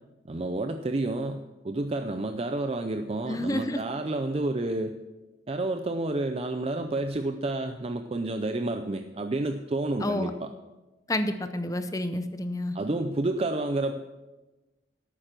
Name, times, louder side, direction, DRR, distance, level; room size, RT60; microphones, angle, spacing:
voice 1, 0.2-5.0 5.5-10.5 12.7-14.0, right 2 dB, 30° right, 7 dB, 0.5 m, -30 dB
voice 2, 3.3-3.8 10.0-10.3 11.1-12.8, left 1 dB, 20° left, 10 dB, 0.6 m, -29 dB
11.5 x 8.8 x 6.0 m, 1.1 s
head